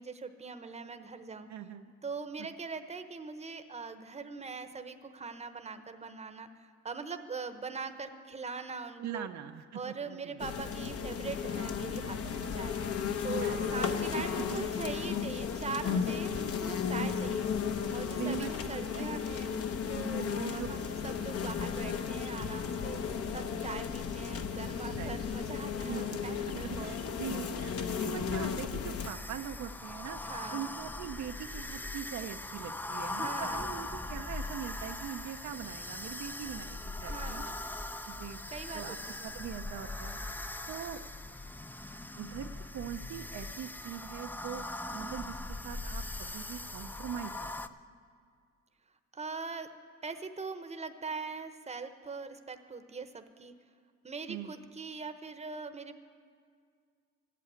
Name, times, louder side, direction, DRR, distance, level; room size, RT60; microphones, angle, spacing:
voice 1, 0.0-1.5 2.0-9.3 9.7-12.8 13.2-17.5 17.9-19.5 19.9-23.1 23.3-27.0 30.2-30.7 33.1-33.7 37.0-37.6 38.0-38.1 38.5-39.2 49.1-49.7 50.0-53.5 54.0-56.0, right 4 dB, 20° right, 8 dB, 0.9 m, -42 dB
voice 2, 1.5-1.9 2.4-2.5 9.0-10.4 13.4-14.7 17.0-17.1 18.2-19.1 19.9-20.7 25.0-25.2 25.9-30.2 30.5-37.5 38.1-38.4 38.7-40.2 40.7-41.0 42.2-44.6 44.9-47.5 54.3-54.5, right 9 dB, 65° right, 6 dB, 0.7 m, -42 dB
sound 1, 10.4-29.1, left 7 dB, 50° left, 0.9 m, -34 dB
sound 2, 29.0-47.7, left 2 dB, 5° left, 0.4 m, -40 dB
14.0 x 8.4 x 9.5 m, 2.2 s
cardioid pair, 90°, 30 cm